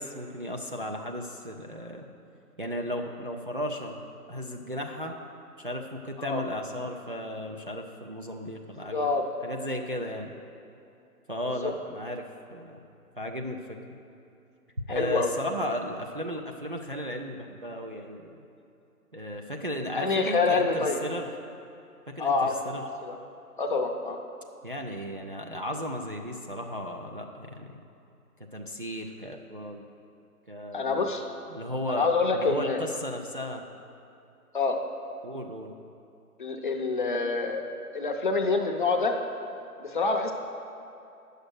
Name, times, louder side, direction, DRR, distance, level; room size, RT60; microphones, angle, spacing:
voice 1, 0.0-2.1 2.6-4.0 4.3-5.1 5.6-9.1 9.4-10.3 11.3-12.8 13.2-13.8 14.9-18.4 19.1-21.3 22.1-22.8 24.6-27.8 28.5-29.8 30.5-31.1 31.5-33.6 35.2-35.7, equal, 40° right, 1 dB, 0.4 m, -35 dB
voice 2, 8.9-9.2 11.5-11.7 14.9-15.4 20.0-21.0 22.2-22.6 23.0-23.2 23.6-24.2 30.7-31.2 31.9-32.8 34.5-34.8 36.4-37.7 37.9-39.2 39.8-40.3, left 4 dB, 35° left, 3 dB, 0.6 m, -26 dB
9.3 x 6.5 x 6.3 m, 2.7 s
figure-of-eight pair, 145°, 46 cm